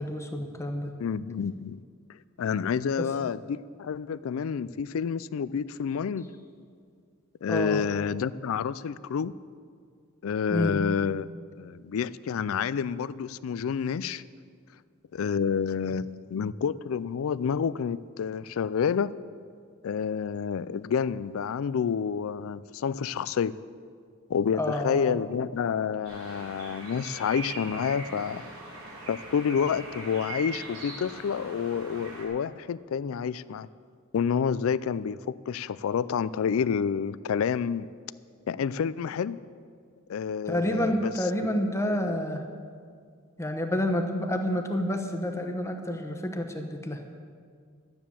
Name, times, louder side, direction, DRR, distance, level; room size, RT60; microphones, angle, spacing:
voice 1, 0.0-0.9 3.0-3.1 7.5-7.8 10.5-10.9 24.6-25.2 40.5-42.5 43.4-47.0, left 1 dB, 15° left, 4 dB, 1.0 m, -29 dB
voice 2, 1.0-1.8 2.4-6.3 7.4-9.3 10.2-11.3 11.5-14.2 15.1-19.1 19.8-23.6 24.3-28.5 29.1-33.7 34.1-35.2 35.5-37.9 38.5-39.4 40.1-41.1 41.4-42.2, left 7 dB, 70° left, 17 dB, 0.4 m, -29 dB
sound 1, 26.1-32.3, right 2 dB, 85° right, 3.6 m, -41 dB
12.0 x 9.8 x 7.0 m, 2.1 s
head